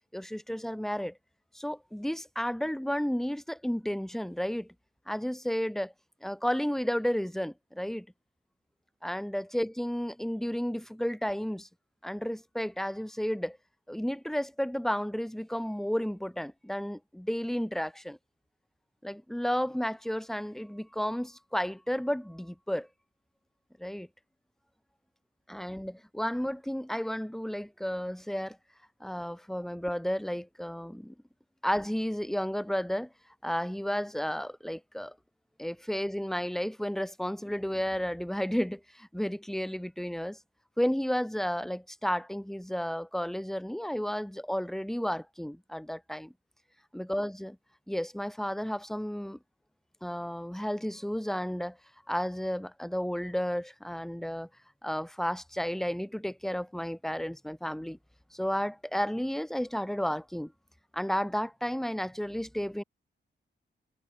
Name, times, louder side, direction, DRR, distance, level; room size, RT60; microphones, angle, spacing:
voice 1, 0.1-1.1 1.5-4.7 5.1-5.9 6.2-8.1 9.0-11.7 12.0-13.6 13.9-18.2 19.0-22.9 23.8-24.1 25.5-28.6 29.0-31.1 31.6-33.1 33.4-35.1 35.6-40.4 40.8-46.3 46.9-47.6 47.9-49.4 50.0-51.8 52.1-54.5 54.8-58.0 58.3-60.5 60.9-62.8, equal, ahead, 2.4 m, -32 dB
wide cardioid pair, 140°, 19 cm